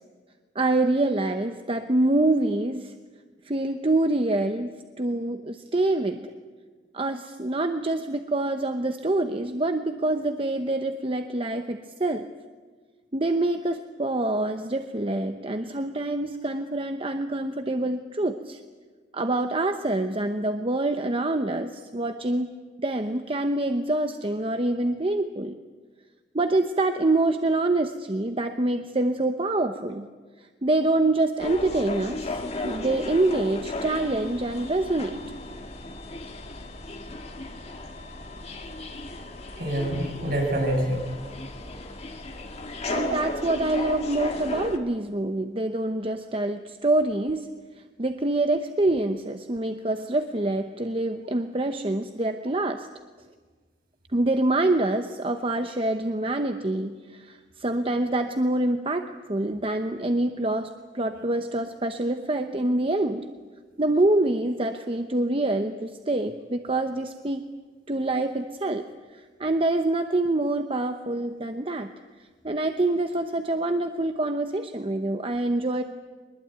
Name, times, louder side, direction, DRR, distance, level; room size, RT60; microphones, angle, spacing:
voice 1, 0.5-2.9 3.4-6.3 6.9-12.3 13.1-18.6 19.1-25.6 26.3-30.1 30.6-35.2 42.9-47.5 48.0-52.9 54.1-63.2 63.8-67.4 67.9-68.9 69.1-71.9 72.4-75.8, right 2 dB, 30° right, 7 dB, 0.9 m, -26 dB
sound 1, 31.4-44.8, left 2 dB, 35° left, 2.2 m, -35 dB
voice 2, 39.6-41.7 42.3-42.4, right 1 dB, 55° right, 1 dB, 7.1 m, -27 dB
23.0 x 21.0 x 9.2 m, 1.4 s
head